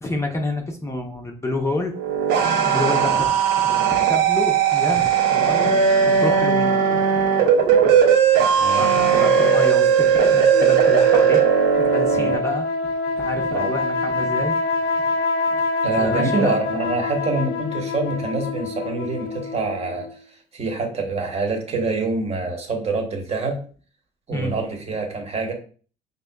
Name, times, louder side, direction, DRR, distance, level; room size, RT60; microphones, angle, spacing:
voice 1, 0.0-1.9 2.4-7.2 7.8-8.0 8.8-11.4 11.8-12.9 13.2-14.9 15.5-15.6 16.0-16.5 24.3-24.5, left 2 dB, 15° left, 2 dB, 0.6 m, -29 dB
sound 1, 1.9-12.3, right 7 dB, 85° right, 0.7 m, -17 dB
voice 2, 8.5-8.8 12.1-12.3 13.5-13.7 15.8-20.1 20.5-23.6 24.3-25.5, right 3 dB, 40° right, 2 dB, 1.0 m, -25 dB
sound 2, 10.5-20.2, left 3 dB, 65° left, 0.5 m, -26 dB
5.0 x 2.7 x 2.2 m, 0.41 s
cardioid pair, 110°, 17 cm